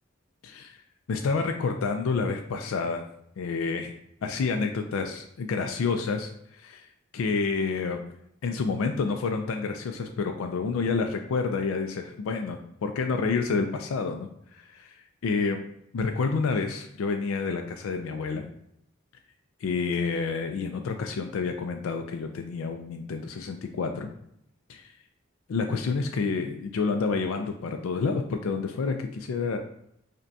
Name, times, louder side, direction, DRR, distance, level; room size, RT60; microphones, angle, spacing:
voice 1, 1.1-3.0 3.4-4.0 4.2-6.9 7.1-8.0 8.4-14.9 15.2-15.6 15.9-18.4 19.6-24.1 24.7-24.9 25.5-29.6, left 4 dB, 85° left, 5 dB, 0.4 m, -29 dB
5.1 x 2.2 x 2.7 m, 0.75 s
head